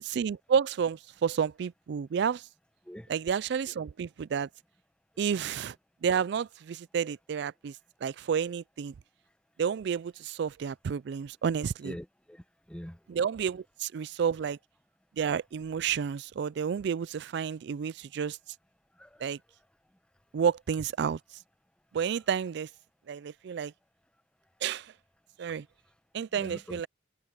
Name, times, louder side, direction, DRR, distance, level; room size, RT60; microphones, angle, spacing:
voice 1, 0.1-2.5 3.1-4.5 5.2-5.8 6.0-7.8 8.0-8.9 9.6-12.0 13.1-14.6 15.2-18.4 19.2-19.4 20.3-21.2 21.9-22.7 23.1-23.7 24.6-24.9 25.4-25.7 26.1-26.9, right 7 dB, 65° right, 0.3 m, -30 dB
voice 2, 11.8-13.0 19.0-19.2 26.3-26.8, equal, 5° left, 0.8 m, -43 dB
head